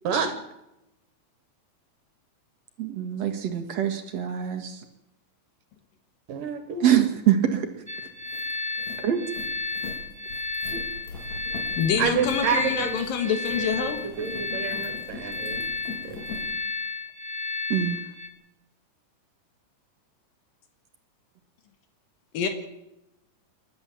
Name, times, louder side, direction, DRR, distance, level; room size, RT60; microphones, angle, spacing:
voice 1, 0.0-0.4 6.3-7.0 12.0-15.6 16.0-16.2, right 6 dB, 75° right, 8 dB, 3.2 m, -29 dB
voice 2, 2.8-4.8 6.8-7.7 9.0-9.2 10.7-10.8 17.7-18.0, right 10 dB, 55° right, 5 dB, 2.6 m, -24 dB
sound 1, 7.7-7.8 8.1-16.5, left 3 dB, 55° left, 4.7 m, -41 dB
sound 2, 7.9-18.3, left 3 dB, 10° right, 0.9 m, -33 dB
voice 3, 11.8-14.0 22.3-22.5, left 7 dB, 80° left, 7 dB, 3.3 m, -26 dB
29.0 x 12.0 x 7.4 m, 0.91 s
omnidirectional pair, 3.9 m